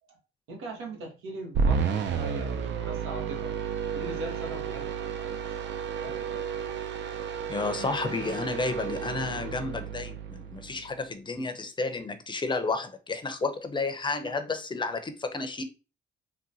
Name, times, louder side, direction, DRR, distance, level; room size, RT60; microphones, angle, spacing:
voice 1, 0.5-4.9 5.2-6.5, right 2 dB, 90° right, 1.1 m, -40 dB
sound 1, 1.5-10.9, right 6 dB, 65° right, 0.5 m, -32 dB
voice 2, 7.5-15.6, left 3 dB, 25° left, 0.5 m, -31 dB
3.8 x 2.2 x 2.7 m
cardioid pair, 90°, 20 cm